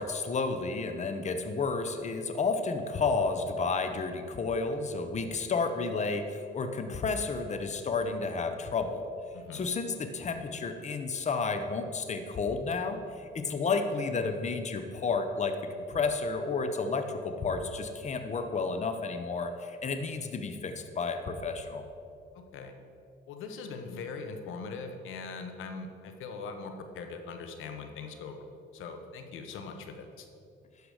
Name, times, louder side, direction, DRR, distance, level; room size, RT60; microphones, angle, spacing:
voice 1, 0.0-9.1 9.5-15.6 15.9-21.8, left 4 dB, 35° left, 7 dB, 0.8 m, -31 dB
voice 2, 9.3-9.6 22.3-22.7 23.3-28.5 28.7-30.3, left 4 dB, 85° left, 6 dB, 1.0 m, -41 dB
11.5 x 4.9 x 6.4 m, 2.4 s
cardioid pair, 90°, 20 cm